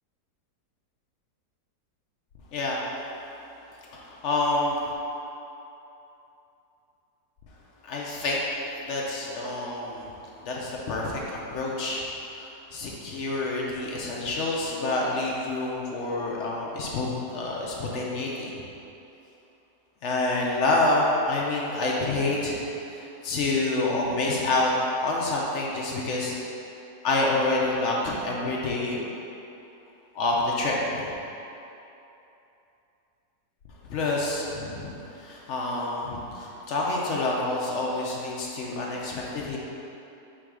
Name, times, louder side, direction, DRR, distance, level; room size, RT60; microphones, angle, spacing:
voice 1, 3.8-4.9 7.8-8.4 8.8-10.1 10.4-12.0 12.3-18.6 20.0-24.7 25.0-26.4 27.0-29.0 30.1-31.1 33.8-39.6, left 2 dB, 70° left, -3 dB, 0.7 m, -28 dB
3.6 x 3.0 x 4.7 m, 2.9 s
omnidirectional pair, 1.7 m